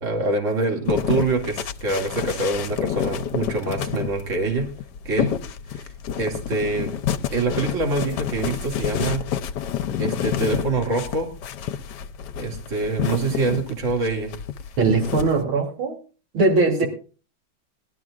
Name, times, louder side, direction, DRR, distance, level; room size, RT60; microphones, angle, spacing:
voice 1, 0.0-4.7 5.0-5.3 5.7-5.8 6.2-6.9 7.3-9.2 10.0-11.3 12.4-14.3, right 3 dB, 40° right, 1 dB, 2.6 m, -25 dB
sound 1, 0.9-15.4, left 9 dB, 65° left, 1.2 m, -29 dB
voice 2, 14.8-16.0 16.3-16.9, right 3 dB, 90° right, 0 dB, 3.7 m, -20 dB
20.5 x 12.0 x 2.4 m, 0.37 s
omnidirectional pair, 2.2 m